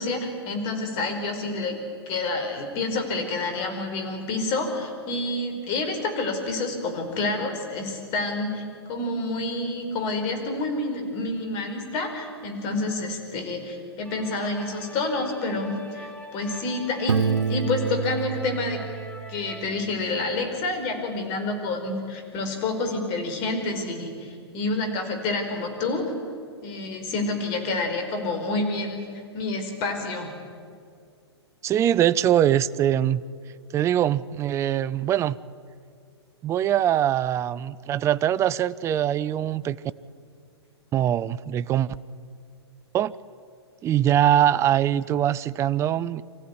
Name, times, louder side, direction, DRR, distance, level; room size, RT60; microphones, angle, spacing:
voice 1, 0.0-1.8 2.1-17.2 17.5-18.8 19.3-26.1 26.6-29.0 29.3-30.3, left 2 dB, 35° left, 5.0 m, -28 dB
sound 1, 14.0-19.7, equal, 10° left, 3.4 m, -43 dB
Piano, 17.1-19.8, right 6 dB, 85° right, 1.0 m, -28 dB
voice 2, 31.6-33.2 33.7-35.4 36.4-39.8 40.9-41.9 42.9-43.1 43.8-46.2, right 11 dB, 20° right, 0.5 m, -22 dB
25.0 x 15.5 x 9.9 m
hypercardioid pair, 115°, 14 cm